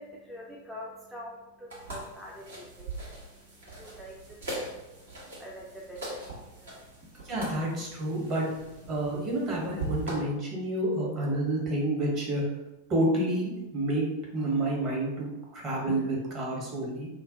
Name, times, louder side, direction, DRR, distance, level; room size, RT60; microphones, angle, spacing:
voice 1, 0.0-7.0, equal, ahead, -5 dB, 0.4 m, -46 dB
sound 1, 1.7-10.2, right 2 dB, 70° right, 1.0 m, -41 dB
voice 2, 7.2-8.4 8.9-12.4 12.9-17.1, right 1 dB, 35° right, -3 dB, 1.0 m, -29 dB
2.5 x 2.1 x 3.7 m, 0.96 s
figure-of-eight pair, 90°, 0 cm